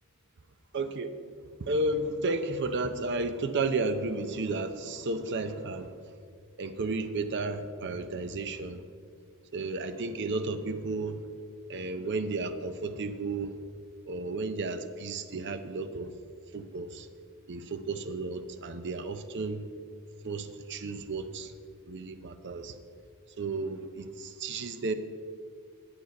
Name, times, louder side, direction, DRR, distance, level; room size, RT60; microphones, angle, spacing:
voice 1, 0.7-1.1 1.6-5.9 6.6-8.8 9.5-11.2 11.7-13.5 14.0-16.1 16.5-17.1 17.5-19.7 20.2-21.5 21.8-22.8 23.4-24.9, right 3 dB, 50° right, 10 dB, 0.6 m, -33 dB
10.5 x 8.0 x 5.2 m, 2.1 s
head